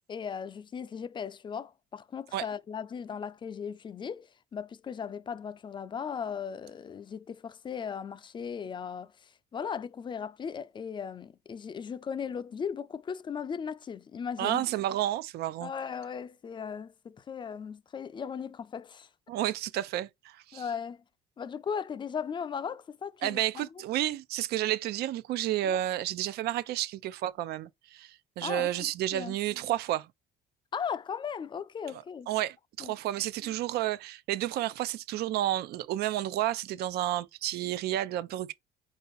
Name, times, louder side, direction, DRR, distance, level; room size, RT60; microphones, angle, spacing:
voice 1, 0.1-14.7 15.6-19.1 20.5-21.0 21.4-23.7 25.7-25.8 28.4-29.4 30.7-32.3 32.8-32.9 33.4-33.5, left 7 dB, 30° left, 0.4 m, -37 dB
voice 2, 14.4-15.7 19.3-20.6 23.2-30.1 32.3-38.5, right 13 dB, 70° right, 0.4 m, -31 dB
4.6 x 2.7 x 4.0 m
cardioid pair, 110°, 17 cm